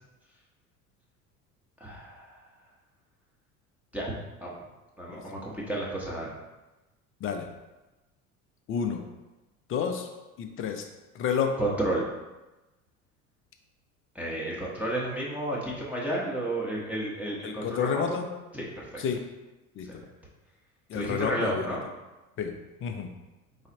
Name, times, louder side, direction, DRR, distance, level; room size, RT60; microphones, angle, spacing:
voice 1, 1.8-2.4 3.9-4.1 4.4-4.5 5.0-6.3 11.6-12.1 14.1-18.2 18.5-18.9 20.9-21.8, right 1 dB, 5° right, -6 dB, 1.0 m, -31 dB
voice 2, 8.7-9.0 9.7-10.1 10.4-10.8 11.1-11.6 17.4-18.3 19.0-19.2 19.7-19.9 20.9-21.8 22.4-22.5 22.8-23.1, left 7 dB, 30° left, 4 dB, 0.6 m, -30 dB
4.1 x 3.2 x 4.0 m, 1.1 s
figure-of-eight pair, 65°, 43 cm